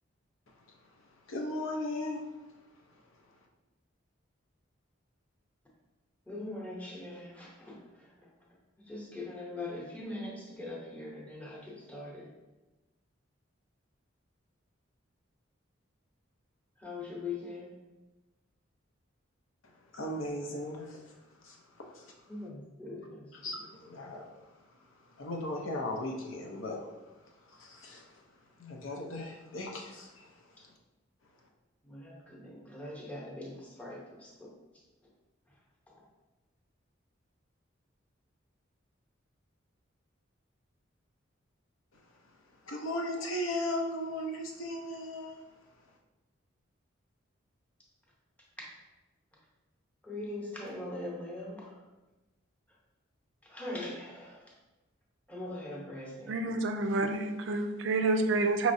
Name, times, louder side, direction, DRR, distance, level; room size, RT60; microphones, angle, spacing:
voice 1, 1.3-2.2 19.9-21.0 21.4-21.6 21.9-22.1 23.4-24.3 25.2-26.9 27.5-28.0 28.6-30.3 42.7-45.4, left 1 dB, 80° left, 0 dB, 0.7 m, -36 dB
voice 2, 6.3-8.1 8.9-12.3 16.8-17.7 22.3-23.6 31.8-34.5 48.6-48.7 50.0-51.7 53.5-54.4 55.3-56.4, left 2 dB, 5° left, -4 dB, 0.8 m, -41 dB
voice 3, 56.3-58.7, right 3 dB, 65° right, 7 dB, 0.4 m, -28 dB
5.0 x 3.0 x 2.6 m, 1.1 s
head